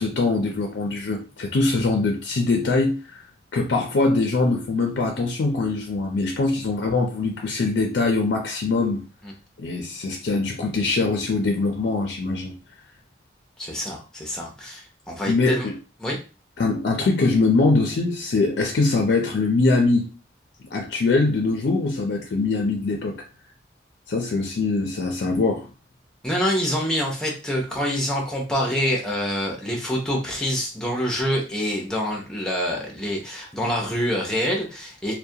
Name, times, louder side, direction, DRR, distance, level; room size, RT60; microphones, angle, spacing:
voice 1, 0.0-3.2 3.5-9.0 9.6-12.5 15.3-15.7 16.6-20.1 20.7-23.2 24.1-25.7, left 3 dB, 75° left, 2 dB, 0.4 m, -22 dB
voice 2, 13.6-15.7 16.0-16.2 26.2-35.2, equal, 5° left, -1 dB, 0.5 m, -26 dB
2.3 x 2.1 x 2.6 m, 0.34 s
head